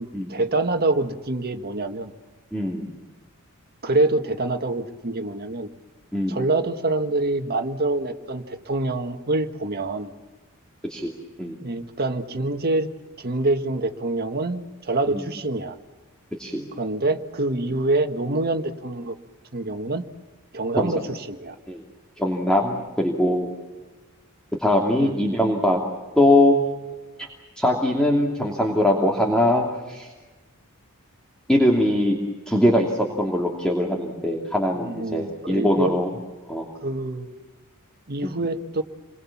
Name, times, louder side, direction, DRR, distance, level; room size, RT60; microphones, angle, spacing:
voice 1, 0.0-2.1 3.8-5.7 6.3-10.1 11.6-12.9 13.2-15.8 16.8-19.1 19.5-20.0 20.5-21.6 25.0-25.2 34.8-36.0 36.8-37.3 38.1-38.8, right 2 dB, 45° right, 6 dB, 1.7 m, -26 dB
voice 2, 2.5-2.9 6.1-6.4 10.9-11.1 11.4-11.6 15.1-15.2 16.4-16.7 20.8-20.9 21.7-21.8 22.2-23.5 24.6-25.8 26.2-26.6 27.2-27.3 27.6-30.1 31.5-32.2 32.5-36.1 36.5-36.7 38.2-38.4, left 1 dB, 5° left, -1 dB, 2.9 m, -21 dB
29.0 x 23.0 x 7.3 m, 1.2 s
head